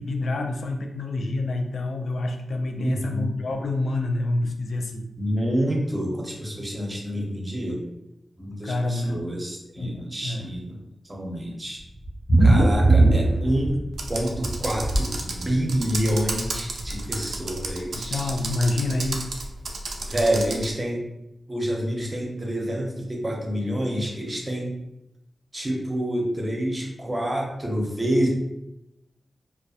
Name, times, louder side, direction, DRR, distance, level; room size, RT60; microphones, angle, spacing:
voice 1, 0.0-5.0 8.6-9.3 9.6-10.5 12.8-12.9 17.9-19.2, left 2 dB, 70° left, 4 dB, 0.3 m, -27 dB
voice 2, 2.7-3.3 5.2-7.8 8.4-10.8 11.1-11.8 12.4-13.7 14.1-18.3 20.1-21.0 21.5-24.7 25.5-28.3, equal, 25° right, -1 dB, 0.6 m, -27 dB
sound 1, 12.0-14.0 14.3-15.0 16.0-16.1 16.5-16.6 16.8-16.9, right 2 dB, 55° left, 1.1 m, -18 dB
Computer keyboard, 13.9-20.7, right 2 dB, 85° right, 0.3 m, -32 dB
2.7 x 2.2 x 2.3 m, 0.89 s
wide cardioid pair, 110°, 0 cm